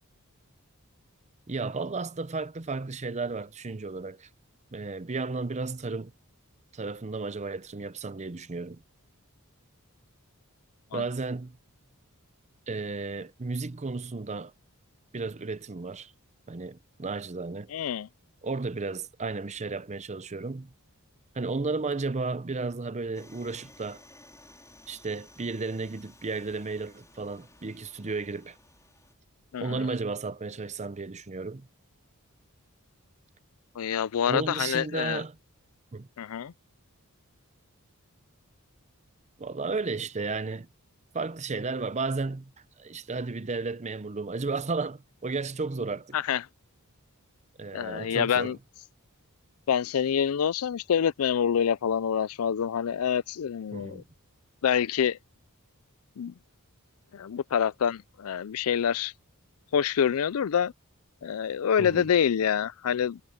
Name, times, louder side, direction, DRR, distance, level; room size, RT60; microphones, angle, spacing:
voice 1, 1.5-4.3 4.7-6.1 6.7-8.8 10.9-11.6 12.7-14.5 15.1-16.1 16.5-17.7 18.4-20.7 21.3-24.0 24.9-28.6 29.6-31.7 34.3-35.4 35.9-36.1 39.4-40.7 41.1-42.5 42.8-46.1 47.6-48.6 53.7-54.0 61.8-62.1, right 3 dB, 30° right, 0.7 m, -33 dB
voice 2, 17.7-18.1 29.5-29.9 33.8-35.2 36.2-36.5 46.1-46.4 47.7-48.6 49.7-54.0 54.6-55.2 56.2-56.3 57.1-59.1 59.7-60.7 61.2-63.2, left 8 dB, 70° left, 0.4 m, -26 dB
sound 1, 23.1-29.1, left 1 dB, 15° left, 4.4 m, -56 dB
head